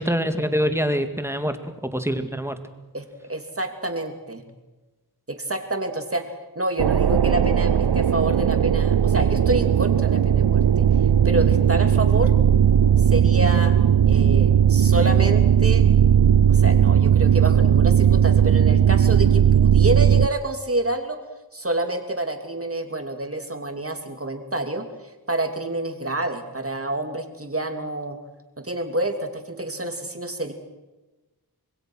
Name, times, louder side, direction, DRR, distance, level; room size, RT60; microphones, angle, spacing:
voice 1, 0.0-1.6 1.9-2.6, equal, 5° right, 8 dB, 2.2 m, -24 dB
voice 2, 2.9-4.4 5.3-6.2 6.5-10.9 11.2-12.3 13.1-13.7 14.1-15.9 16.5-21.2 21.5-24.9 25.3-28.2 28.6-30.5, right 1 dB, 35° right, 5 dB, 2.9 m, -28 dB
sound 1, 6.8-20.3, right 9 dB, 80° right, 0.6 m, -17 dB
26.0 x 21.0 x 6.3 m, 1.1 s
wide cardioid pair, 60°, 39 cm